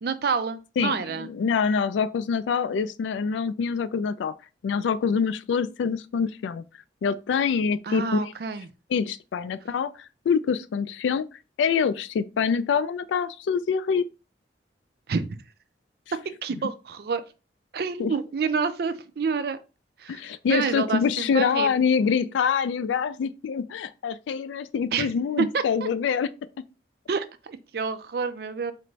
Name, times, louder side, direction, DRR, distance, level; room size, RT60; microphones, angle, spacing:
voice 1, 0.0-1.3 7.8-8.7 15.1-15.4 16.2-17.2 17.7-19.6 20.0-21.7 24.9-25.1 25.4-25.9 27.1-28.7, right 5 dB, 55° right, 0.4 m, -28 dB
voice 2, 0.8-4.3 4.6-6.6 7.0-8.2 8.9-9.9 10.3-11.3 11.6-14.1 18.0-18.1 20.1-26.3, left 6 dB, 85° left, 0.3 m, -25 dB
4.3 x 2.5 x 3.1 m
head